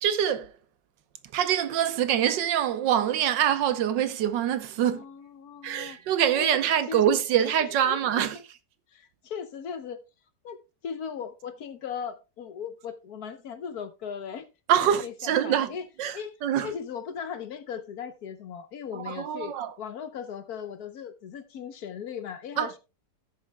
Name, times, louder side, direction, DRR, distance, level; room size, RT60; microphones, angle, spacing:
voice 1, 0.0-0.5 1.3-5.0 5.6-8.4 14.7-15.7 16.0-16.7 18.9-19.7 22.6-22.8, right 9 dB, 85° right, 1.5 m, -25 dB
voice 2, 4.8-6.0 6.4-6.5 6.9-7.0 7.9-8.2 8.9-10.0 10.4-10.6 10.8-14.5 14.9-15.8 16.1-16.4 16.6-22.8, left 7 dB, 60° left, 1.3 m, -38 dB
17.0 x 6.7 x 2.2 m
omnidirectional pair, 1.9 m